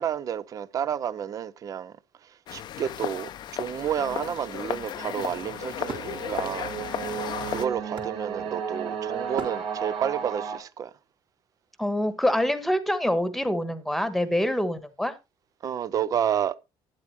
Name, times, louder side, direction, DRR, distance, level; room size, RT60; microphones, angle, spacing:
voice 1, 0.0-1.9 2.2-6.7 7.0-10.9 15.6-16.5, right 9 dB, 40° right, 0.6 m, -30 dB
sound 1, 2.5-7.6, left 11 dB, 50° left, 0.6 m, -34 dB
sound 2, 4.1-10.6, right 7 dB, 75° right, 3.9 m, -34 dB
Wood, 5.9-8.8 9.3-10.2, right 4 dB, 55° right, 3.3 m, -42 dB
voice 2, 11.8-15.1, left 1 dB, ahead, 1.3 m, -25 dB
12.0 x 9.7 x 3.1 m
cardioid pair, 145°, 10 cm